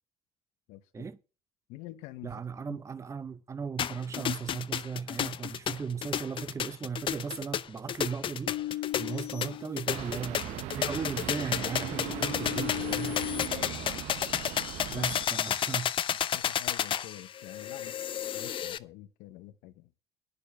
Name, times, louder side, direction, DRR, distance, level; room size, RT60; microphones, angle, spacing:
voice 1, 0.7-1.1 1.7-2.3 2.7-2.8 9.1-9.2 13.5-14.1 14.9-15.1 15.7-15.8 16.3-17.9 18.3-19.9, left 16 dB, 80° left, 1.0 m, -46 dB
voice 2, 2.2-13.2 14.9-16.1, right 6 dB, 25° right, 0.7 m, -37 dB
sound 1, 3.8-18.8, left 9 dB, 45° left, 0.7 m, -32 dB
sound 2, 8.5-10.4 10.9-13.5, left 14 dB, 60° left, 1.1 m, -38 dB
sound 3, 9.9-15.3, right 13 dB, 70° right, 0.7 m, -39 dB
9.9 x 6.9 x 6.9 m
supercardioid pair, 80°, 12 cm